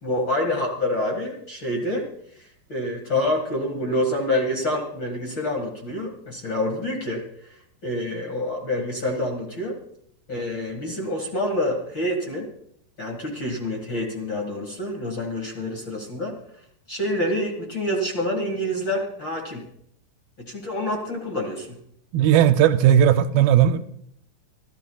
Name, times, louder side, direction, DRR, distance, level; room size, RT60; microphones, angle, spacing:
voice 1, 0.0-2.1 2.4-7.2 7.8-9.8 10.3-12.5 13.0-16.4 16.9-19.6 20.4-21.8, left 1 dB, 40° left, 1 dB, 1.9 m, -27 dB
voice 2, 22.1-23.8, right 10 dB, 80° right, 10 dB, 2.4 m, -16 dB
25.0 x 13.0 x 2.3 m, 0.69 s
omnidirectional pair, 4.4 m